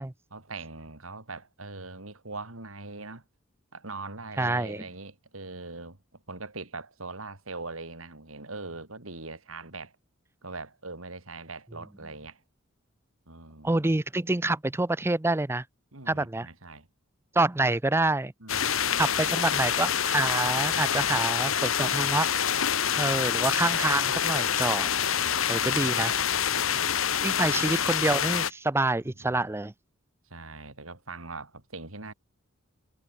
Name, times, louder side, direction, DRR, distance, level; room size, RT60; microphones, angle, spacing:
voice 1, 0.3-3.2 3.7-9.9 10.4-12.4 13.3-13.8 15.9-16.9 18.4-19.7 25.5-25.8 26.3-26.9 29.2-29.5 30.3-32.1, right 3 dB, 85° right, 4.0 m, -42 dB
voice 2, 4.4-4.8 13.6-15.6 16.1-16.5 17.3-18.3 19.0-22.3 23.0-24.9 25.3-26.1 27.2-29.7, right 2 dB, 10° right, 0.5 m, -27 dB
sound 1, 18.5-28.5, left 8 dB, 80° left, 1.6 m, -26 dB
head